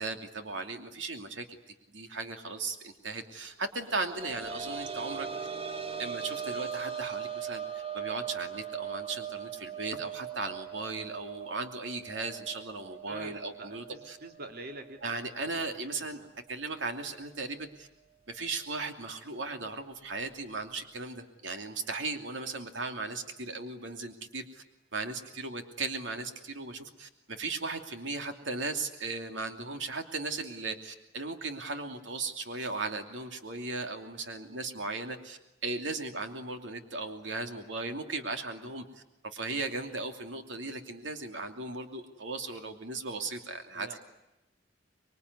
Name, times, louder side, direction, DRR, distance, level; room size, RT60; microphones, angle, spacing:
voice 1, 0.0-1.4 1.9-5.3 6.0-14.2 15.0-16.2 16.5-17.9 18.3-24.6 24.9-38.8 39.2-44.0, right 3 dB, 75° right, 5 dB, 2.8 m, -37 dB
sound 1, 3.8-15.3 15.6-15.7 17.2-17.3, right 7 dB, 30° right, 1.2 m, -40 dB
voice 2, 13.1-15.2 15.6-15.7 16.2-16.3 43.7-44.0, right 2 dB, 55° right, 5 dB, 2.7 m, -45 dB
26.0 x 23.0 x 9.7 m, 0.94 s
head